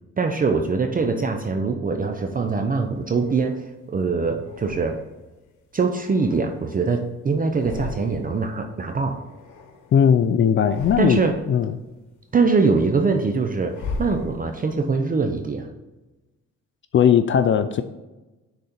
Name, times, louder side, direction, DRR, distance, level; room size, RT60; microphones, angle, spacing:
voice 1, 0.2-5.0 5.7-9.2 11.0-11.4 12.3-15.7, right 4 dB, 30° right, 4 dB, 0.6 m, -23 dB
sound 1, 2.5-3.7 4.4-5.3 5.8-7.1 7.4-8.5 8.7-10.1 10.5-11.6 12.0-14.8, left 4 dB, 80° left, 1.1 m, -38 dB
voice 2, 9.9-11.2 11.5-11.7 16.9-17.8, left 8 dB, 40° left, 10 dB, 0.4 m, -18 dB
6.4 x 4.1 x 4.3 m, 1.1 s
cardioid pair, 90°, 30 cm